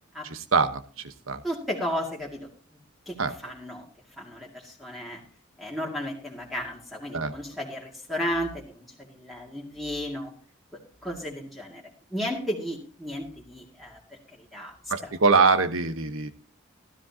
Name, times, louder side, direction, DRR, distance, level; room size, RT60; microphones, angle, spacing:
voice 1, 0.3-1.4 3.2-3.3 7.1-7.3 14.9-16.3, right 4 dB, 70° right, 10 dB, 1.1 m, -23 dB
voice 2, 1.4-2.8 3.1-3.9 4.2-5.2 5.6-10.3 11.0-11.8 12.1-15.1, equal, ahead, -3 dB, 2.2 m, -34 dB
15.5 x 12.5 x 2.8 m, 0.39 s
head